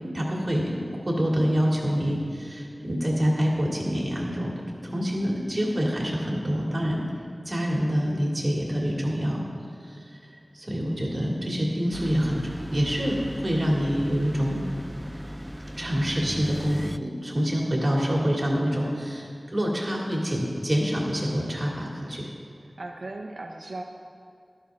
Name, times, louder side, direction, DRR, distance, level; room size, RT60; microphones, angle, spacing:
voice 1, 0.0-0.8 1.0-4.5 4.8-7.0 7.5-9.4 9.8-12.4 12.7-14.6 15.8-22.3, equal, 45° right, -2 dB, 2.2 m, -26 dB
sound 1, 11.9-17.0, equal, 10° right, 0.3 m, -37 dB
voice 2, 22.8-23.8, right 2 dB, 90° right, 2 dB, 0.5 m, -37 dB
12.5 x 11.5 x 3.5 m, 2.5 s
wide cardioid pair, 60°, 0 cm